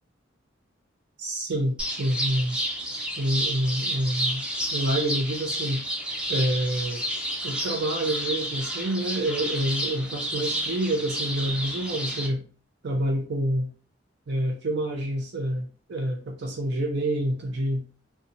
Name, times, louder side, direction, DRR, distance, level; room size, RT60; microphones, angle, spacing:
voice 1, 1.2-2.6 3.2-4.4 4.7-5.8 6.3-7.0 7.4-12.4 12.8-13.7 14.3-17.8, right 1 dB, 60° right, 2 dB, 0.5 m, -27 dB
sound 1, 1.8-12.3, equal, 5° right, 0.4 m, -30 dB
2.7 x 2.2 x 2.6 m, 0.37 s
head